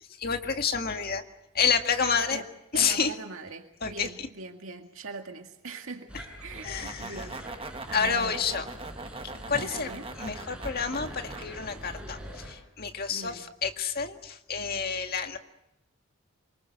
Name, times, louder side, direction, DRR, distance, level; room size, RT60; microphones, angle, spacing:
voice 1, 0.2-1.2 1.5-2.4 2.7-3.1 3.8-4.1 6.6-7.2 7.9-8.6 9.5-9.9 10.2-15.4, left 6 dB, 45° left, 5 dB, 1.9 m, -29 dB
voice 2, 2.7-6.1 6.4-7.4 7.9-8.4 9.5-10.1 13.1-13.4, right 3 dB, 80° right, 4 dB, 2.1 m, -41 dB
sound 1, 6.1-12.5, equal, 5° right, 5.8 m, -43 dB
sound 2, 6.5-11.5, right 3 dB, 25° right, 1.2 m, -42 dB
27.5 x 24.5 x 6.5 m, 0.86 s
head